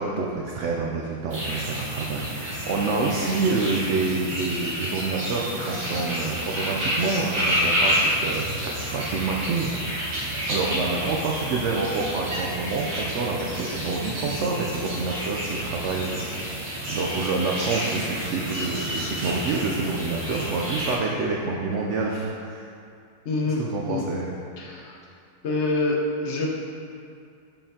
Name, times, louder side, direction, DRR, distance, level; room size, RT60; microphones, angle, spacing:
voice 1, 0.0-9.7 10.5-16.2 16.9-22.7 23.6-24.3, right 3 dB, 70° right, -2 dB, 0.7 m, -27 dB
sound 1, 1.3-21.0, equal, 85° right, 2.0 m, -29 dB
voice 2, 23.2-23.6 23.9-24.0 24.6-25.0 25.4-26.0 26.2-26.6, left 3 dB, 55° left, -2 dB, 0.9 m, -26 dB
6.8 x 5.6 x 2.8 m, 2.4 s
omnidirectional pair, 1.7 m